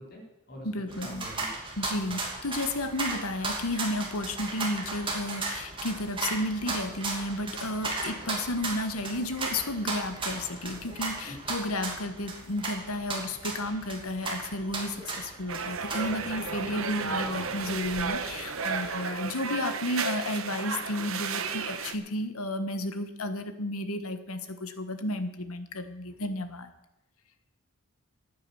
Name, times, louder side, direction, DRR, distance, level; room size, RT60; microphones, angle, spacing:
voice 1, 0.0-1.5 11.3-11.4 19.0-19.3, equal, 45° left, -1 dB, 3.9 m, -45 dB
voice 2, 0.6-1.3 1.8-26.7, left 1 dB, 75° left, 9 dB, 1.3 m, -32 dB
sound 1, 0.9-18.8, right 3 dB, 25° right, 2.6 m, -36 dB
sound 2, 15.5-21.9, right 5 dB, 70° right, 1.1 m, -33 dB
14.0 x 9.4 x 7.1 m, 0.92 s
head